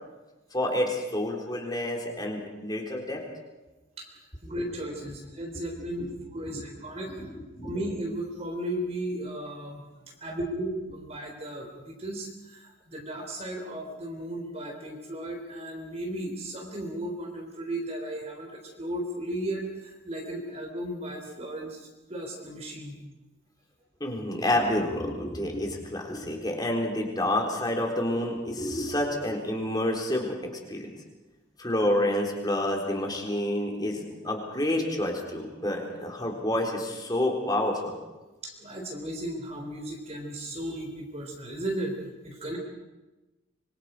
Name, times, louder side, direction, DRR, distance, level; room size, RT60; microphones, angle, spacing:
voice 1, 0.5-3.2 6.5-6.7 7.2-7.3 7.6-7.7 24.0-30.9 31.6-37.9, left 1 dB, 20° left, 0 dB, 4.0 m, -29 dB
voice 2, 4.4-7.3 7.6-23.0 38.4-42.0 42.2-42.6, right 1 dB, 35° right, 1 dB, 3.5 m, -35 dB
25.5 x 24.0 x 5.1 m, 1.1 s
head